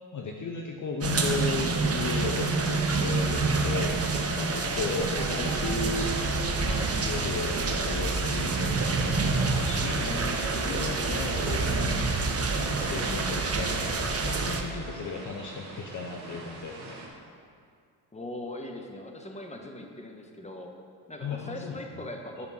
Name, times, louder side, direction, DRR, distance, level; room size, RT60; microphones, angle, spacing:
voice 1, 0.1-6.1 6.6-17.0 21.2-21.8 22.4-22.5, left 4 dB, 35° left, 1 dB, 0.9 m, -35 dB
sound 1, 1.0-14.6, right 3 dB, 30° right, 1.1 m, -27 dB
sound 2, 4.4-15.1, left 4 dB, 80° left, 1.0 m, -44 dB
voice 2, 4.9-5.3 10.1-10.5 18.1-20.8 21.1-22.5, left 1 dB, 15° left, 2 dB, 1.3 m, -40 dB
sound 3, 11.1-17.1, right 3 dB, 90° right, 1.5 m, -45 dB
9.8 x 5.2 x 6.1 m, 2.2 s
hypercardioid pair, 65°, 50 cm